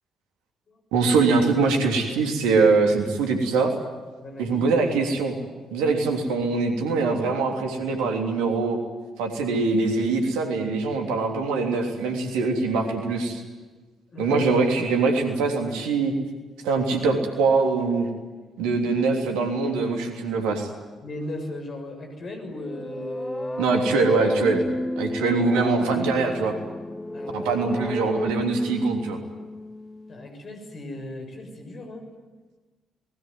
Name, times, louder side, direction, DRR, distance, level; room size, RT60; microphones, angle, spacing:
voice 1, 0.9-3.7 4.4-5.4 5.7-8.8 9.2-13.4 14.2-16.1 16.6-18.1 18.6-20.7 23.6-24.7 25.0-26.6 27.3-29.2, right 4 dB, 65° right, 3 dB, 3.2 m, -23 dB
voice 2, 4.2-4.7 14.1-14.5 21.0-24.1 27.1-27.4 30.1-32.1, left 1 dB, 45° left, 4 dB, 6.7 m, -37 dB
sound 1, 22.5-30.3, left 1 dB, 15° left, 1.6 m, -31 dB
27.5 x 21.0 x 9.4 m, 1.3 s
figure-of-eight pair, 40°, 0 cm